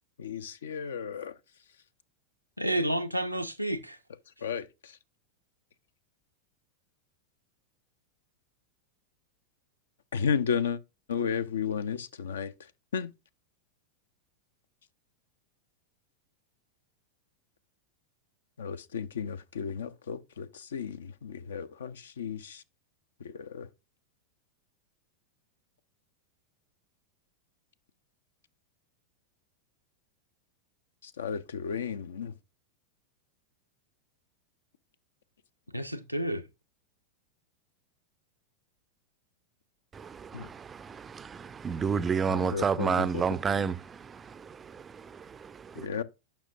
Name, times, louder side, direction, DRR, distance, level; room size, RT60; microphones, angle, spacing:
voice 1, 0.2-1.4 4.4-5.0 10.1-10.8 11.1-13.1 18.6-22.6 23.2-23.7 31.0-32.4 40.3-40.5 42.3-43.2 45.8-46.0, left 7 dB, 65° left, 0.5 m, -33 dB
voice 2, 2.6-4.0 35.7-36.5, right 1 dB, 90° right, 0.6 m, -30 dB
voice 3, 39.9-45.9, right 6 dB, 20° right, 0.4 m, -31 dB
8.8 x 5.7 x 2.5 m
figure-of-eight pair, 90°, 0 cm